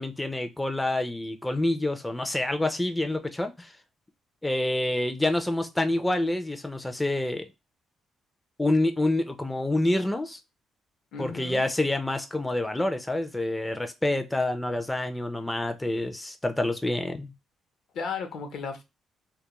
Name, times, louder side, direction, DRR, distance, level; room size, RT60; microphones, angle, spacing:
voice 1, 0.0-3.7 4.4-7.5 8.6-10.4 11.2-17.3, left 1 dB, 10° left, 7 dB, 0.3 m, -27 dB
voice 2, 11.1-11.6 17.9-18.8, left 5 dB, 75° left, 6 dB, 0.6 m, -34 dB
2.2 x 2.1 x 2.9 m, 0.23 s
cardioid pair, 90°, 0 cm